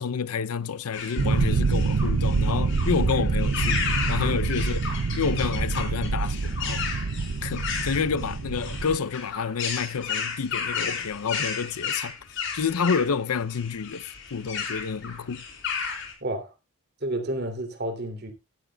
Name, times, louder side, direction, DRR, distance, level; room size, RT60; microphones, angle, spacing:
voice 1, 0.0-4.8 5.2-6.9 7.4-12.1 12.5-15.4, left 6 dB, 80° left, 0.6 m, -29 dB
sound 1, 0.9-16.1, left 6 dB, 55° left, 4.2 m, -33 dB
sound 2, 1.2-9.0, right 4 dB, 80° right, 0.6 m, -26 dB
voice 2, 17.0-18.3, right 1 dB, 45° right, 2.8 m, -30 dB
15.5 x 12.0 x 2.3 m
head